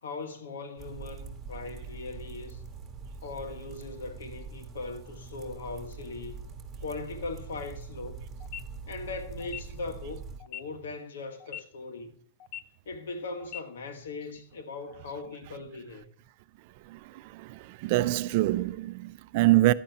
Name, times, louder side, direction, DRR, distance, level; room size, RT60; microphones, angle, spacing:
voice 1, 0.0-2.6 3.2-6.4 6.8-8.2 8.9-12.1 12.8-16.1, left 3 dB, 85° left, 1.4 m, -39 dB
sound 1, 0.8-10.4, right 5 dB, 20° right, 1.7 m, -43 dB
sound 2, 8.4-8.6 9.4-9.6 10.4-10.6 11.4-11.6 12.4-12.6 13.4-13.6, left 11 dB, 45° left, 0.6 m, -39 dB
voice 2, 17.3-19.7, right 17 dB, 55° right, 0.4 m, -25 dB
11.0 x 9.0 x 3.0 m
hypercardioid pair, 125°, 0 cm